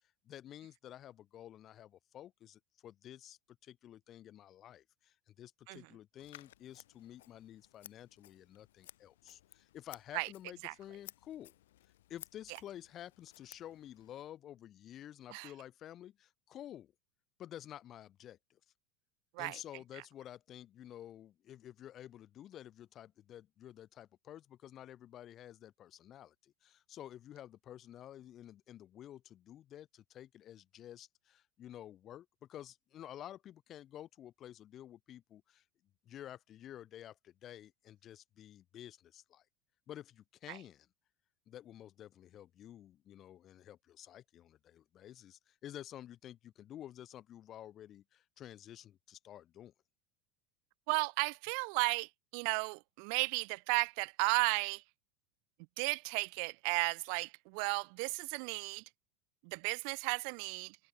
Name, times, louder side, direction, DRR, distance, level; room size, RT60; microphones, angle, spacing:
voice 1, 0.2-11.5 12.1-16.9 17.4-18.6 19.4-35.6 36.0-39.4 39.9-40.9 41.5-49.7, left 11 dB, 40° left, 3.1 m, -51 dB
Scissors, 6.2-14.2, left 14 dB, 90° left, 7.7 m, -58 dB
voice 2, 50.9-54.8 55.8-58.8 59.4-60.8, right 40 dB or more, 65° right, 0.7 m, -34 dB
supercardioid pair, 125°, 0 cm